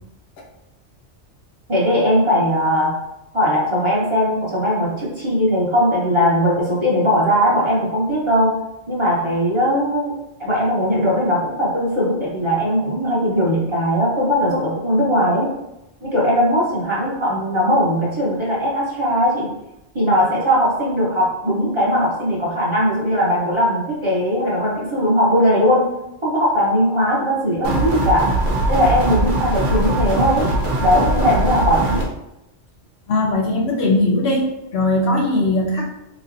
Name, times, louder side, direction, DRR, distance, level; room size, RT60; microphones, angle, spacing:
voice 1, 1.7-2.9 3.3-8.5 8.9-10.1 10.4-15.5 16.0-19.5 19.9-25.8 26.2-28.3 28.7-30.5 30.8-32.0, equal, 30° right, -6 dB, 0.8 m, -19 dB
sound 1, 27.6-32.0, right 2 dB, 90° right, 1.1 m, -21 dB
voice 2, 33.1-35.9, left 2 dB, 70° left, 0 dB, 0.8 m, -19 dB
3.8 x 3.1 x 2.5 m, 0.90 s
omnidirectional pair, 1.2 m